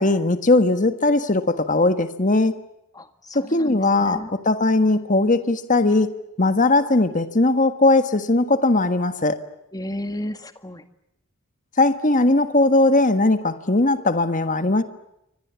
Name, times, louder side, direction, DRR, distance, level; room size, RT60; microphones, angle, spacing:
voice 1, 0.0-2.5 3.3-6.1 6.4-9.4 11.8-14.8, left 2 dB, 35° left, 10 dB, 1.5 m, -19 dB
voice 2, 2.9-4.3 9.7-10.8, left 1 dB, 15° left, 9 dB, 1.9 m, -33 dB
29.0 x 25.0 x 7.1 m, 0.83 s
head